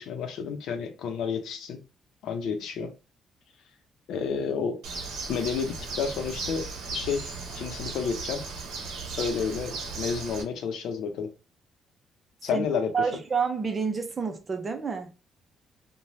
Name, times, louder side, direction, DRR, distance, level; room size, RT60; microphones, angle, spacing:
voice 1, 0.0-1.8 2.2-2.9 4.1-4.8 5.3-8.4 9.2-11.3 12.4-12.9, left 6 dB, 80° left, 0.6 m, -30 dB
Bird, 4.8-10.4, right 4 dB, 85° right, 0.7 m, -36 dB
voice 2, 12.9-15.1, right 5 dB, 35° right, 0.6 m, -28 dB
3.0 x 2.2 x 2.6 m
cardioid pair, 90°, 0 cm